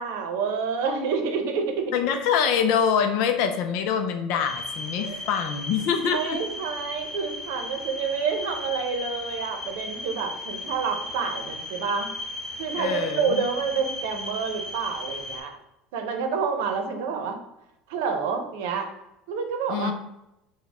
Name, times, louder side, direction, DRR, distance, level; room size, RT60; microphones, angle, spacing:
voice 1, 0.0-1.9 5.0-5.3 6.1-12.1 12.6-15.6 15.9-17.4 17.9-18.9 19.3-19.9, right 5 dB, 75° right, 5 dB, 0.8 m, -28 dB
voice 2, 1.9-6.4 12.8-13.4 19.7-19.9, left 7 dB, 55° left, 7 dB, 0.6 m, -25 dB
sound 1, 4.4-15.4, left 2 dB, 10° left, 0.9 m, -36 dB
6.1 x 2.3 x 3.5 m, 0.87 s
cardioid pair, 180°, 0 cm